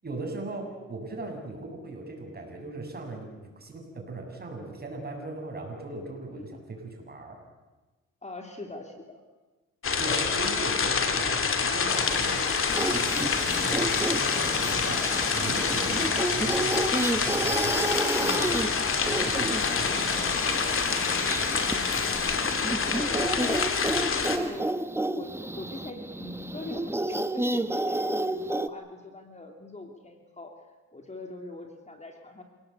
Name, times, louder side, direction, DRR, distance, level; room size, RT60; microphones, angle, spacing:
voice 1, 0.0-7.4 10.0-12.5 12.9-17.9 18.2-20.6, right 2 dB, 30° right, 2 dB, 7.5 m, -38 dB
voice 2, 8.2-9.2 21.6-22.2 22.9-23.7 24.2-24.7 25.1-30.5 30.9-32.4, left 2 dB, 20° left, 4 dB, 3.2 m, -41 dB
sound 1, 9.8-24.4, left 5 dB, 45° left, 2.7 m, -27 dB
Sawing, 11.9-22.2, left 4 dB, 75° left, 6.7 m, -37 dB
sound 2, 12.7-28.7, right 1 dB, 10° right, 1.1 m, -31 dB
27.5 x 18.5 x 8.3 m, 1.2 s
cardioid pair, 90°, 30 cm